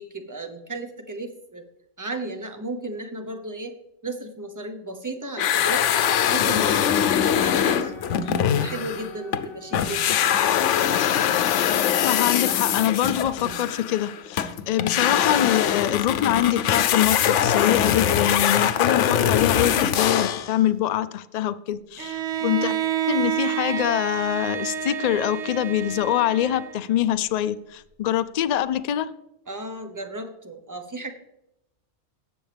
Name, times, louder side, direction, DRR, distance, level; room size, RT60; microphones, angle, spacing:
voice 1, 0.0-1.6 2.0-3.7 4.0-5.9 6.3-8.0 8.3-10.4 22.4-22.8 29.5-31.1, right 1 dB, 20° right, 6 dB, 0.8 m, -34 dB
sound 1, 5.4-9.5 9.7-20.5, left 9 dB, 80° left, 0.9 m, -22 dB
Wind instrument woodwind instrument, 6.4-10.3, left 2 dB, 50° right, 1.7 m, -44 dB
voice 2, 12.0-22.7 23.1-29.1, left 11 dB, 60° left, 12 dB, 0.4 m, -24 dB
Bowed string instrument, 22.0-27.0, right 9 dB, 75° right, 1.0 m, -29 dB
17.5 x 7.1 x 3.4 m, 0.88 s
omnidirectional pair, 1.2 m